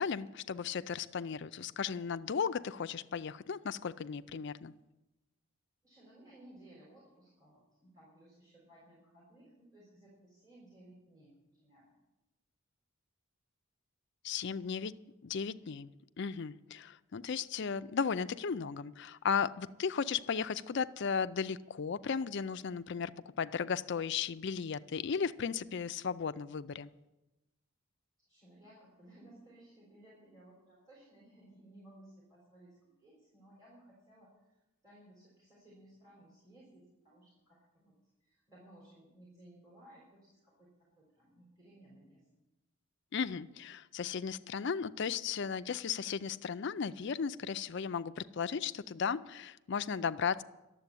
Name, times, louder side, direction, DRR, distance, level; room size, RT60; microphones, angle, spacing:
voice 1, 0.0-4.7 14.2-15.0 15.2-15.9 16.2-26.9 43.1-50.4, left 6 dB, 55° left, 13 dB, 0.4 m, -35 dB
voice 2, 5.8-12.0 28.3-37.9 38.2-42.2, right 1 dB, 20° right, -6 dB, 3.9 m, -59 dB
11.5 x 7.6 x 9.8 m, 1.0 s
head